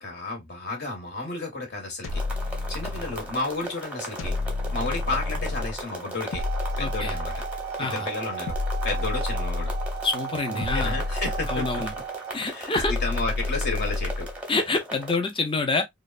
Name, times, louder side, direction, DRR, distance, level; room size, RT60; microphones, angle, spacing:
voice 1, 0.0-2.2 2.7-4.3 4.7-6.4 6.8-7.4 7.8-8.5 8.8-9.7 10.5-11.8 12.4-14.3, left 3 dB, 55° left, 1.0 m, -32 dB
sound 1, 2.0-3.4 4.2-5.8 6.3-7.7 8.5-10.1 10.6-12.0 12.7-14.4, left 3 dB, 80° left, 0.5 m, -30 dB
sound 2, 2.1-15.2, right 1 dB, 5° right, 0.7 m, -38 dB
sound 3, 6.1-12.3, right 10 dB, 55° right, 0.3 m, -37 dB
voice 2, 6.8-7.1 7.8-8.1 10.0-11.0 11.5-11.9 12.3-12.9 14.5-15.8, left 3 dB, 25° left, 0.6 m, -27 dB
3.0 x 2.1 x 2.3 m
head